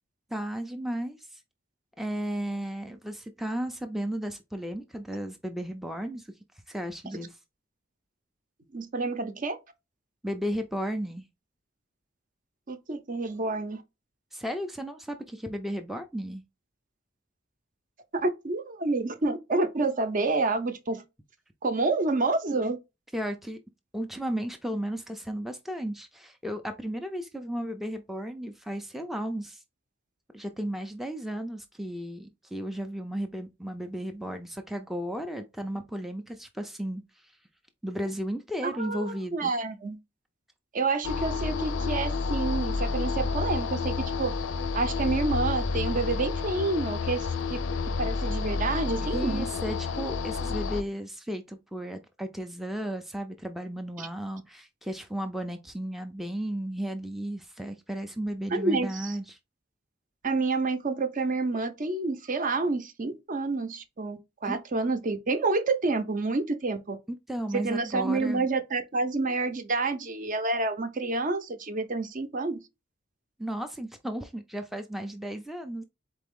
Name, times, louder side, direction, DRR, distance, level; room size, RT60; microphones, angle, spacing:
voice 1, 0.3-1.4 2.0-6.3 6.7-7.4 10.2-11.2 14.3-16.4 23.1-23.6 23.9-29.6 30.3-37.3 37.8-39.5 49.0-59.4 64.5-64.6 67.3-68.5 73.4-75.8, equal, ahead, 0.4 m, -34 dB
voice 2, 8.7-9.6 12.7-13.8 18.1-21.0 21.6-22.8 38.6-40.0 40.7-44.3 44.7-47.6 48.0-49.5 54.0-54.1 58.5-59.2 60.2-67.0 67.5-72.6, right 3 dB, 45° right, 0.6 m, -28 dB
Dark Star Drone, 41.0-50.8, left 4 dB, 75° left, 0.5 m, -30 dB
4.2 x 3.4 x 3.6 m
head